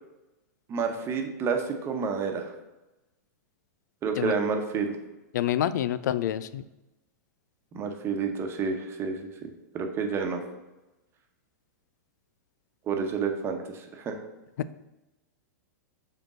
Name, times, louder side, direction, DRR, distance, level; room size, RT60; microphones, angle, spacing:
voice 1, 0.7-2.5 4.0-4.9 7.7-10.4 12.9-14.2, right 5 dB, 25° right, 4 dB, 1.1 m, -30 dB
voice 2, 5.3-6.6, left 11 dB, 70° left, 15 dB, 0.4 m, -27 dB
5.2 x 4.5 x 6.1 m, 1.0 s
hypercardioid pair, 135°, 10 cm